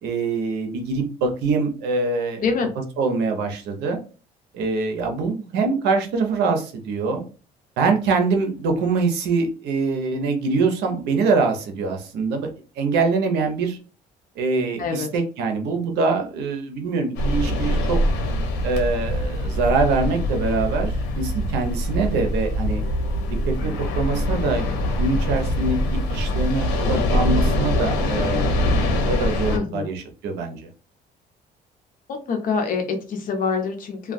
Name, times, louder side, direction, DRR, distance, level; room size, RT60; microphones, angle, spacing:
voice 1, 0.0-2.5 3.0-4.0 4.5-7.2 7.8-12.5 12.8-13.8 14.4-18.0 18.6-22.8 23.5-28.7 29.1-30.7, right 4 dB, 80° right, 4 dB, 0.7 m, -24 dB
sound 1, 17.2-29.6, left 1 dB, 85° left, 0.7 m, -23 dB
voice 2, 29.5-29.9 32.1-34.1, left 5 dB, 55° left, 4 dB, 0.7 m, -25 dB
2.3 x 2.2 x 2.5 m, 0.35 s
cardioid pair, 110°, 17 cm